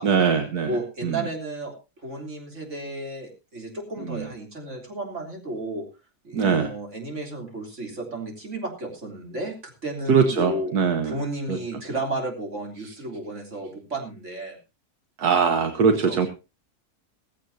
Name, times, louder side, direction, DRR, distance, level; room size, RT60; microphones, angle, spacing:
voice 1, 0.0-0.7 1.0-1.2 4.0-4.3 6.3-6.7 10.1-11.2 11.5-11.6 15.2-16.3, right 6 dB, 75° right, 8 dB, 1.6 m, -21 dB
voice 2, 0.6-5.9 6.2-10.7 11.0-14.6 16.0-16.2, right 2 dB, 50° right, 1 dB, 3.7 m, -33 dB
16.5 x 15.5 x 2.7 m, 0.29 s
omnidirectional pair, 1.7 m